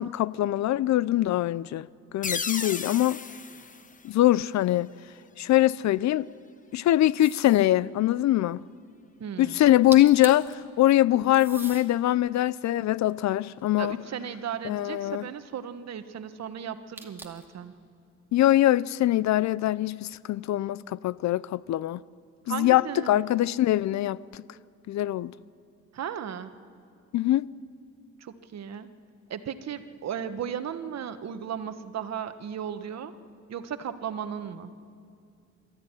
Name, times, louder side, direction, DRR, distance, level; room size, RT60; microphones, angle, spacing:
voice 1, 0.0-1.9 2.1-3.2 4.0-4.9 5.4-6.3 6.7-8.6 9.4-14.0 14.6-15.3 18.3-22.0 22.5-24.4 24.9-25.3 27.1-27.5, left 14 dB, 65° left, 0.5 m, -23 dB
sound 1, 2.2-4.8, left 5 dB, 25° left, 0.9 m, -35 dB
sound 2, 7.2-7.7 9.6-9.7 9.9-10.5 11.3-11.9 12.5-14.0 17.0-17.5, right 2 dB, 5° right, 2.3 m, -42 dB
voice 2, 9.2-9.6 13.8-17.7 22.5-23.2 25.9-26.5 28.2-28.9 29.3-33.1 33.5-34.7, right 8 dB, 60° right, 1.3 m, -35 dB
22.5 x 14.0 x 9.8 m
cardioid pair, 90°, 30 cm